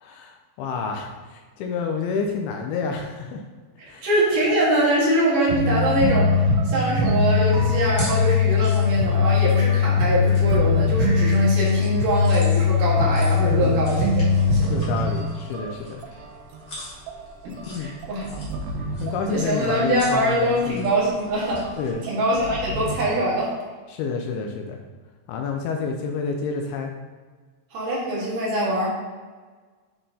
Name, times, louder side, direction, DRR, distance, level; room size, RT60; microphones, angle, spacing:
voice 1, 0.0-3.4 3.9-4.1 13.4-13.9 14.7-16.0 17.7-17.9 18.3-18.4 19.0-20.8 21.8-22.0 23.9-24.8 25.3-26.9, left 5 dB, 80° left, 3 dB, 2.4 m, -29 dB
voice 2, 3.8-14.8 17.4-18.3 19.3-21.7 22.1-23.6 27.7-28.9, right 1 dB, 60° right, -6 dB, 2.9 m, -23 dB
sound 1, 5.5-15.7 16.0-16.2 16.5-16.6 17.1-19.7 20.1-20.6 21.0-21.1 21.5-23.4, left 4 dB, 80° right, 2.1 m, -21 dB
sound 2, 7.8-21.9, left 1 dB, 40° left, 1.1 m, -43 dB
8.8 x 5.5 x 2.7 m, 1.4 s
omnidirectional pair, 4.8 m